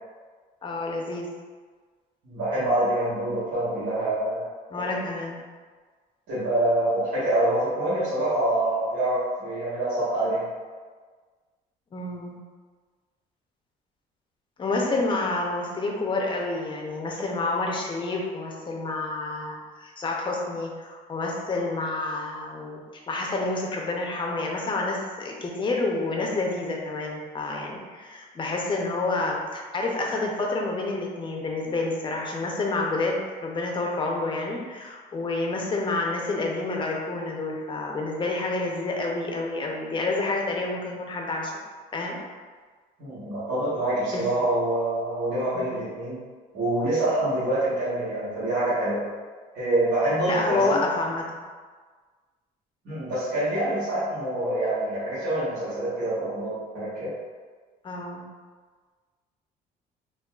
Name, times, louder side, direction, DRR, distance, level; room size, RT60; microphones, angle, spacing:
voice 1, 0.6-1.3 4.7-5.4 11.9-12.4 14.6-41.5 41.9-42.2 44.1-44.2 45.5-45.8 50.2-51.2 57.8-58.3, left 2 dB, 30° left, 0 dB, 0.6 m, -29 dB
voice 2, 2.2-4.5 6.3-10.5 43.0-46.2 46.5-49.0 49.5-50.8 52.8-57.1, right 1 dB, 75° right, -13 dB, 1.3 m, -26 dB
3.8 x 2.3 x 2.3 m, 1.5 s
cardioid pair, 110°, 17 cm